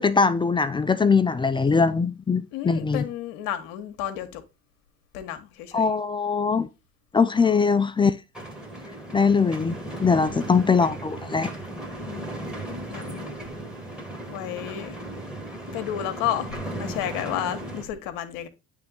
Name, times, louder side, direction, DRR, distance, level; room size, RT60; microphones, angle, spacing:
voice 1, 0.0-3.0 5.7-6.7 7.1-8.1 9.1-9.8 10.0-11.5, left 5 dB, 15° left, 0.4 m, -21 dB
voice 2, 2.5-4.4 5.1-5.9 7.3-7.7 10.1-10.5 12.0-12.5 12.9-13.3 14.3-15.0 15.7-16.5 16.8-18.5, left 11 dB, 65° left, 1.2 m, -32 dB
sound 1, 8.3-17.8, right 1 dB, ahead, 1.8 m, -36 dB
8.7 x 3.6 x 3.6 m
hypercardioid pair, 75°, 36 cm